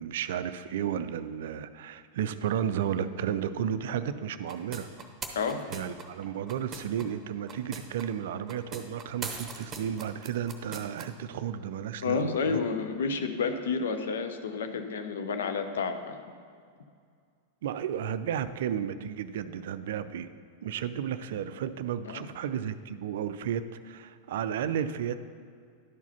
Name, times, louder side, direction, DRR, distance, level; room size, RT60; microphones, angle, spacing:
voice 1, 0.0-4.9 5.7-12.6 17.6-20.3 20.6-25.2, right 9 dB, 55° right, 12 dB, 0.3 m, -33 dB
sound 1, 4.5-7.0 7.5-8.0 8.5-11.0, right 4 dB, 20° right, 0.9 m, -40 dB
voice 2, 5.3-5.7 12.0-16.2 22.1-22.3, left 5 dB, 65° left, 7 dB, 0.6 m, -30 dB
11.0 x 4.7 x 5.6 m, 2.2 s
figure-of-eight pair, 90°, 0 cm